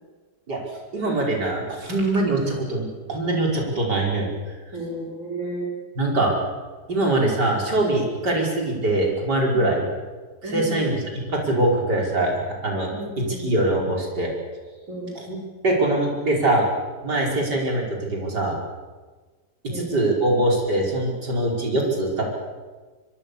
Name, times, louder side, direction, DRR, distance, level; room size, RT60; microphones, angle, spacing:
voice 1, 0.9-4.3 6.0-6.3 6.9-9.8 10.4-10.9 11.3-12.9 13.4-14.3 15.3-15.4 15.6-16.7 17.0-17.8 18.1-18.6 19.7-22.3, right 2 dB, 75° right, -1 dB, 5.8 m, -22 dB
voice 2, 4.7-5.7 9.5-9.8 10.4-11.0 12.9-13.5 14.9-15.1 19.7-19.9, right 1 dB, 50° right, -2 dB, 5.7 m, -32 dB
24.5 x 24.0 x 7.0 m, 1.3 s
omnidirectional pair, 1.8 m